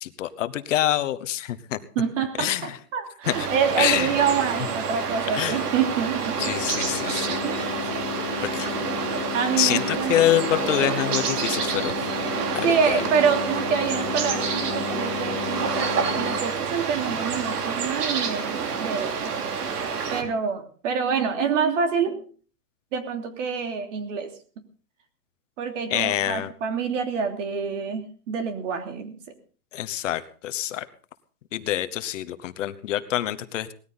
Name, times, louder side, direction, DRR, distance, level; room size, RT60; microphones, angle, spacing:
voice 1, 0.0-1.8 2.4-2.8 3.3-3.5 3.8-4.1 5.3-5.6 6.4-7.4 8.5-8.7 9.6-11.9 12.5-13.0 20.2-20.3 25.9-26.5 29.7-30.8 31.5-33.7, left 13 dB, 50° left, 12 dB, 1.2 m, -26 dB
voice 2, 1.9-6.4 7.4-7.9 8.3-8.6 9.3-10.1 12.6-19.4 20.1-22.2 22.9-24.3 25.6-29.2, right 6 dB, 50° right, 6 dB, 3.1 m, -27 dB
sound 1, 3.2-20.2, right 6 dB, 75° right, 3.1 m, -28 dB
sound 2, 6.4-16.4, left 14 dB, 25° left, 0.6 m, -34 dB
19.0 x 14.0 x 3.9 m, 0.40 s
hypercardioid pair, 160°, 47 cm